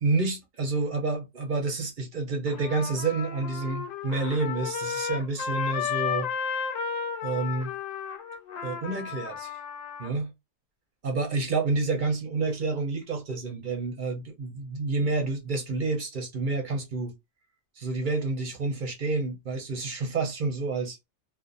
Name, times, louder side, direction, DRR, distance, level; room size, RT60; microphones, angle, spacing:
voice 1, 0.0-6.3 7.2-7.7 8.6-9.6 10.0-10.3 11.0-17.1 17.8-21.0, right 3 dB, 45° right, 0.8 m, -29 dB
Trumpet, 2.5-10.1, left 7 dB, 90° left, 1.0 m, -33 dB
2.4 x 2.4 x 2.5 m
omnidirectional pair, 1.3 m